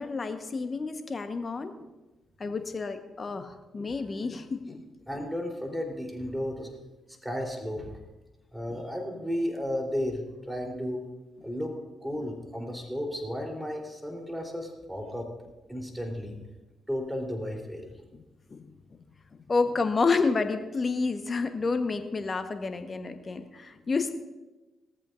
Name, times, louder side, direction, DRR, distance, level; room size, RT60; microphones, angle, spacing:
voice 1, 0.0-1.9 2.4-4.8 8.7-8.8 18.1-18.2 18.5-18.7 19.3-24.1, left 4 dB, 40° left, 8 dB, 1.3 m, -30 dB
voice 2, 5.1-6.7 7.2-8.0 8.5-11.0 11.4-11.7 12.0-15.3 15.7-16.4 16.9-18.0, equal, ahead, 1 dB, 3.8 m, -33 dB
19.0 x 14.0 x 2.7 m, 1.1 s
hypercardioid pair, 40°, 0 cm